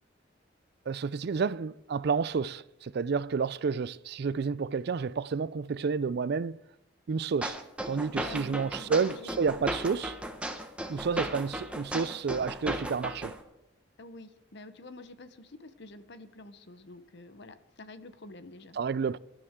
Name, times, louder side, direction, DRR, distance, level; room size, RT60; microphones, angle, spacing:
voice 1, 0.9-6.6 7.1-7.6 7.9-10.2 10.9-13.3 18.7-19.2, right 5 dB, 60° right, 0.4 m, -30 dB
sound 1, 7.4-13.4, right 1 dB, 5° right, 1.3 m, -36 dB
voice 2, 8.1-9.3 14.0-18.8, left 2 dB, 65° left, 1.0 m, -48 dB
24.0 x 12.5 x 3.7 m
head